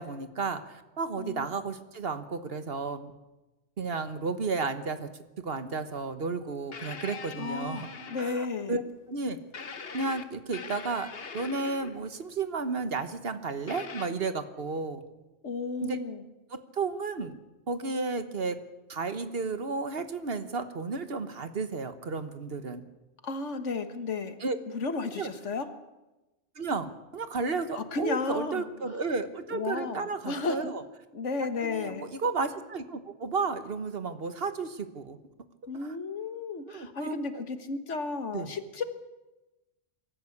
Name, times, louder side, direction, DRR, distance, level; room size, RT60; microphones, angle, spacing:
voice 1, 0.0-3.1 3.8-5.1 5.4-7.9 8.2-8.8 9.1-9.4 9.9-11.1 11.3-15.0 15.8-16.0 16.5-17.4 17.7-18.6 18.9-22.8 24.4-24.6 25.2-25.3 26.5-30.8 31.6-35.2 36.7-37.4 38.3-38.5, right 4 dB, 55° right, 10 dB, 1.4 m, -33 dB
voice 2, 1.2-1.5 7.4-8.8 15.4-16.2 23.2-24.4 24.7-25.7 27.7-28.7 29.5-30.7 31.1-32.1 35.7-38.8, left 3 dB, 80° left, 9 dB, 1.8 m, -33 dB
sound 1, 6.7-8.6 9.5-12.1 13.7-14.1, left 5 dB, 55° left, 1.3 m, -42 dB
23.0 x 13.5 x 8.6 m, 1.1 s
omnidirectional pair, 1.2 m